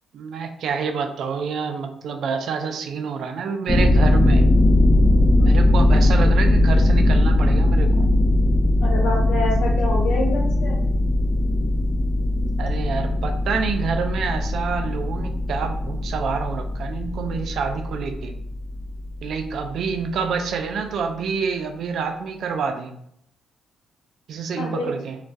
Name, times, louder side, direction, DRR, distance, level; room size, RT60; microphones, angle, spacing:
voice 1, 0.1-4.4 5.3-8.1 12.6-18.3 19.2-22.9 24.3-25.2, right 5 dB, 70° right, 6 dB, 0.3 m, -27 dB
sound 1, 3.7-19.4, left 1 dB, 25° left, 0.4 m, -19 dB
voice 2, 8.8-10.8 24.6-24.9, left 2 dB, 85° left, -1 dB, 0.6 m, -27 dB
2.3 x 2.1 x 2.6 m, 0.72 s
cardioid pair, 90°, 0 cm